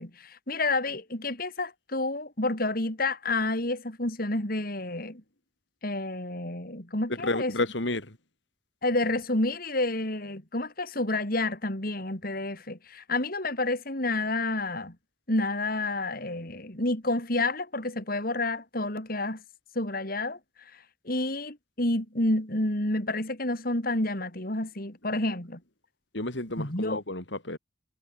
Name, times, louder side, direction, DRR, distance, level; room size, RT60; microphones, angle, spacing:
voice 1, 0.0-5.2 5.8-7.5 8.8-14.9 15.3-19.4 19.7-20.4 20.7-25.6 26.6-27.0, left 2 dB, 50° left, 4.8 m, -29 dB
voice 2, 7.2-8.1 26.1-27.6, left 2 dB, 80° left, 4.6 m, -31 dB
head